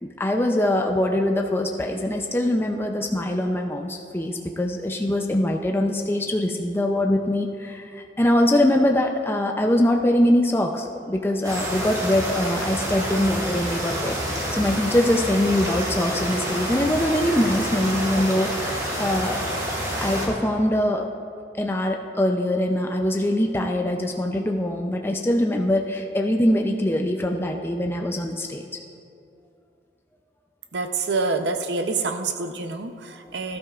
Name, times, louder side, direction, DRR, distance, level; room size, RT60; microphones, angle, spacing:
voice 1, 0.0-19.4 20.0-21.1 21.5-28.7, left 1 dB, 15° left, 2 dB, 0.5 m, -23 dB
sound 1, 11.4-20.3, right 1 dB, 20° right, 2.4 m, -28 dB
voice 2, 30.7-33.6, right 3 dB, 75° right, 7 dB, 0.7 m, -27 dB
18.0 x 12.0 x 2.4 m, 2.5 s
head